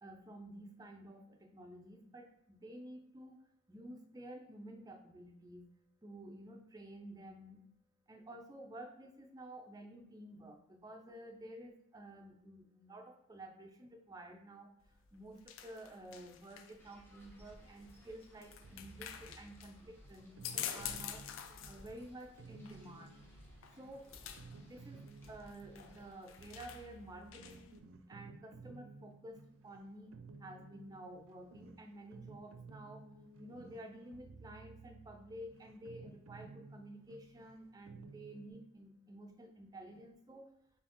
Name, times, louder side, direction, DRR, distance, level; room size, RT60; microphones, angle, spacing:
voice 1, 0.0-3.4 3.7-5.7 6.0-7.6 8.1-14.7 15.1-21.2 21.7-23.2 23.7-24.1 24.6-27.7 28.1-30.1 30.4-33.0 33.4-40.5, right 1 dB, 20° right, 3 dB, 0.4 m, -52 dB
sound 1, 14.8-27.8, left 9 dB, 85° left, 0.4 m, -49 dB
sound 2, 16.8-26.8, equal, 10° left, 0.9 m, -60 dB
Liz Lang's vintage Cello Sound Design, 18.6-38.5, right 4 dB, 90° right, 0.4 m, -56 dB
4.2 x 3.4 x 2.9 m, 0.76 s
head